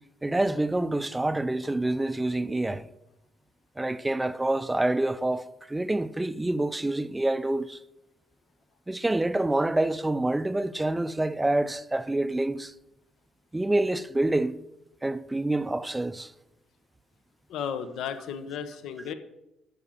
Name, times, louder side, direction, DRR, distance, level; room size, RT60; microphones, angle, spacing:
voice 1, 0.2-2.8 3.8-7.8 8.9-12.7 13.5-14.6 15.0-16.3, right 2 dB, 10° right, 0.5 m, -27 dB
voice 2, 17.5-19.1, left 7 dB, 75° left, 0.9 m, -34 dB
12.5 x 5.1 x 7.3 m
cardioid pair, 100°, 0 cm